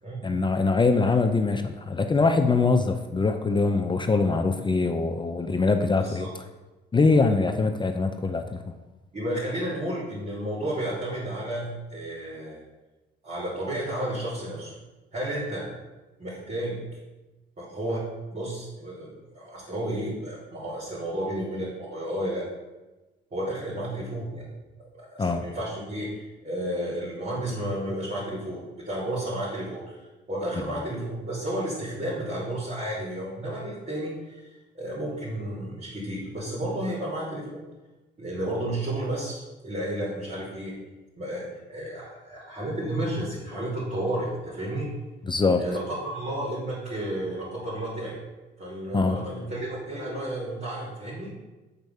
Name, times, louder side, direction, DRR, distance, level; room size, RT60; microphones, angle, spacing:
voice 1, 0.2-6.3 6.9-8.7 25.2-25.5 45.3-45.6 48.9-49.2, left 3 dB, 25° left, 6 dB, 0.5 m, -23 dB
voice 2, 6.0-6.3 9.1-12.6 13.2-14.7 15.1-15.7 16.2-16.8 17.6-22.5 23.3-24.5 25.0-37.6 38.2-40.8 41.2-44.9 45.6-48.2 48.6-51.3, right 1 dB, 40° right, -10 dB, 2.9 m, -32 dB
8.1 x 4.5 x 5.4 m, 1.1 s
cardioid pair, 90°, 20 cm